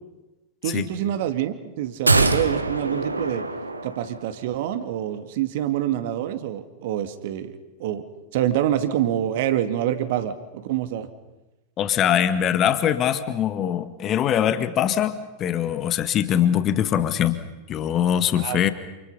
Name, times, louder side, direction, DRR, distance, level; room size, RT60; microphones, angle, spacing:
voice 1, 0.6-3.4 3.8-7.5 7.8-8.0 8.3-11.1 18.3-18.6, right 11 dB, 50° right, 9 dB, 2.3 m, -26 dB
sound 1, 2.1-4.4 4.7-4.8, right 3 dB, 80° right, 1.5 m, -23 dB
voice 2, 11.8-17.4 17.7-18.7, left 10 dB, 30° left, 11 dB, 1.9 m, -22 dB
28.5 x 28.5 x 5.7 m, 1.1 s
figure-of-eight pair, 90°, 0 cm